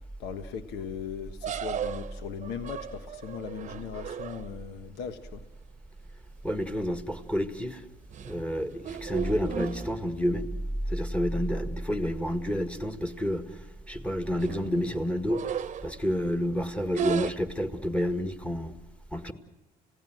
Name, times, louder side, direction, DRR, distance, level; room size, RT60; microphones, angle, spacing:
voice 1, 0.2-5.4, left 7 dB, 85° left, 9 dB, 1.3 m, -38 dB
sound 1, 1.4-4.7 6.4-6.7 7.1-7.4 7.9-10.4 10.8-10.9 11.2-11.3 12.2-12.3 12.6-12.7 13.1-13.4 14.0-16.2 16.9-17.3, right 8 dB, 45° right, 0.9 m, -36 dB
voice 2, 6.4-7.8 8.3-10.5 10.9-15.4 15.8-18.7 19.1-19.3, equal, 5° left, 8 dB, 1.8 m, -29 dB
30.0 x 17.0 x 7.6 m, 1.1 s
cardioid pair, 110°, 17 cm